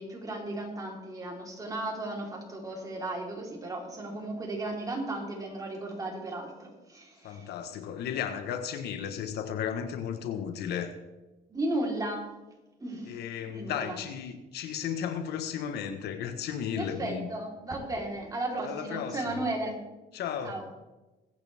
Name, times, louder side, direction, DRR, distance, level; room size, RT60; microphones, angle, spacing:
voice 1, 0.0-7.5 11.5-12.3 12.8-13.2 13.5-14.0 16.8-19.8 20.4-20.6, right 2 dB, 20° right, 3.9 m, -35 dB
voice 2, 7.2-10.9 13.1-17.3 18.6-19.4 20.1-20.6, left 8 dB, 75° left, 1.3 m, -34 dB
21.5 x 9.0 x 3.6 m
cardioid pair, 110°, 17 cm